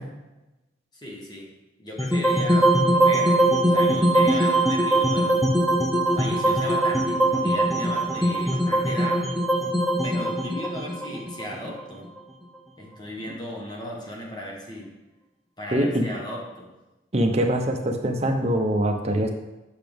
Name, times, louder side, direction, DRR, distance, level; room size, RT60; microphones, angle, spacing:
voice 1, 0.9-1.5 1.8-3.4 3.7-5.4 6.1-9.2 10.0-12.1 12.8-14.9 15.6-16.7, equal, 25° left, -2 dB, 1.3 m, -36 dB
sound 1, 2.0-12.2, right 1 dB, ahead, 0.6 m, -21 dB
voice 2, 15.7-16.1 17.1-19.3, right 1 dB, 35° right, 3 dB, 0.8 m, -23 dB
8.4 x 5.9 x 3.5 m, 1.1 s
head